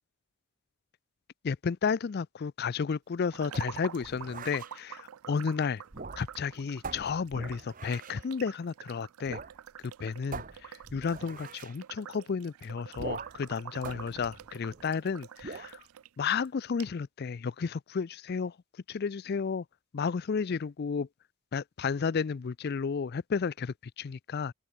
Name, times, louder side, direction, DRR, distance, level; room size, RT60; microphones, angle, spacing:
voice 1, 1.4-5.8 6.2-9.4 9.8-15.8 16.2-18.6 18.9-19.6 19.9-21.1 21.5-24.5, left 5 dB, 45° left, 0.4 m, -32 dB
sound 1, 3.3-16.1 16.4-16.5 16.8-16.9, right 9 dB, 75° right, 0.4 m, -47 dB
sound 2, 3.5-4.7 5.8-6.5 6.8-8.3 9.3-9.6 9.8-9.9 10.3-11.8 13.0-13.5 13.8-15.0 15.4-15.8, right 4 dB, 40° right, 1.0 m, -43 dB
open air
head